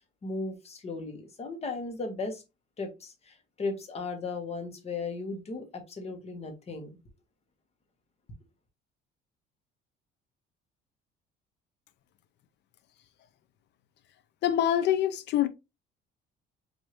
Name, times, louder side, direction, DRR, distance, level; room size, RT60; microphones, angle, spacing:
voice 1, 0.2-2.4 2.8-7.0, left 3 dB, 30° left, 1.1 m, -36 dB
voice 2, 14.4-15.5, left 11 dB, 60° left, 0.6 m, -25 dB
4.7 x 2.7 x 3.0 m
cardioid pair, 130°, 20 cm